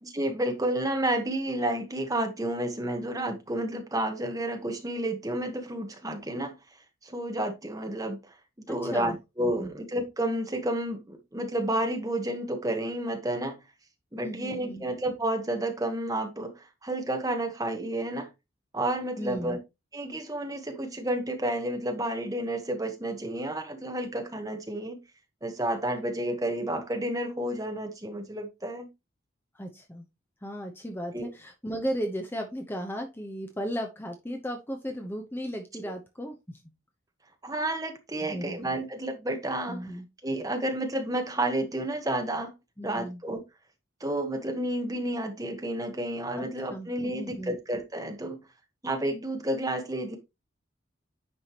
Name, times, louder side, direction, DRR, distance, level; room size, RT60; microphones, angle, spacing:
voice 1, 0.0-6.5 7.0-8.2 8.7-13.6 14.1-18.3 18.7-19.6 19.9-25.0 25.4-28.9 31.1-31.3 37.4-39.9 40.2-42.5 42.8-43.4 44.0-48.4 48.8-50.2, right 1 dB, 15° right, 1.2 m, -31 dB
voice 2, 8.7-9.2 9.6-9.7 14.2-14.8 19.2-19.6 29.5-30.0 30.4-36.6 38.2-38.6 39.7-40.1 42.8-43.2 46.4-46.5 46.7-47.5, equal, 10° left, 0.8 m, -35 dB
9.7 x 5.0 x 3.0 m
head